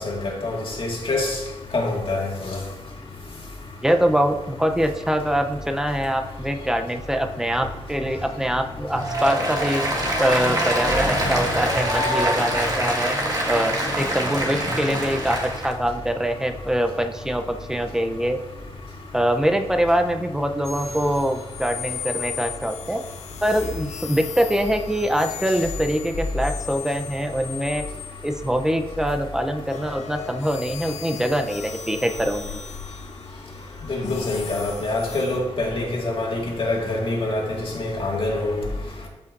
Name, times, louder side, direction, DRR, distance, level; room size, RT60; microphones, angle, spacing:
voice 1, 0.0-1.4 1.7-2.6 11.0-11.3 14.8-14.9 33.9-38.6, left 2 dB, 50° left, 2.0 m, -26 dB
voice 2, 3.8-9.8 10.2-13.2 13.5-18.4 19.1-23.0 23.4-27.8 28.2-32.6, equal, 5° right, 0.7 m, -24 dB
Applause, 8.9-15.7, right 1 dB, 35° right, 1.7 m, -25 dB
sound 1, 20.6-28.9 29.6-35.4, left 8 dB, 85° left, 0.7 m, -37 dB
13.5 x 5.5 x 2.6 m
wide cardioid pair, 105°, 11 cm